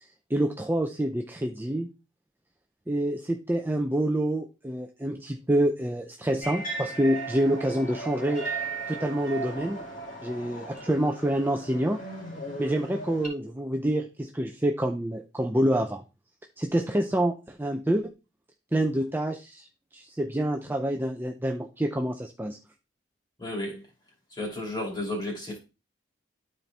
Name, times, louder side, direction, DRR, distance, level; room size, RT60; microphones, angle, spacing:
voice 1, 0.0-1.9 2.9-9.8 10.2-12.0 12.6-16.0 16.6-18.1 18.7-19.7 19.9-22.6, right 1 dB, 10° right, 0.5 m, -27 dB
sound 1, 6.4-13.3, right 3 dB, 40° left, 2.4 m, -37 dB
voice 2, 23.4-23.8 24.3-25.6, left 1 dB, 20° left, 2.6 m, -33 dB
12.0 x 4.3 x 3.3 m
head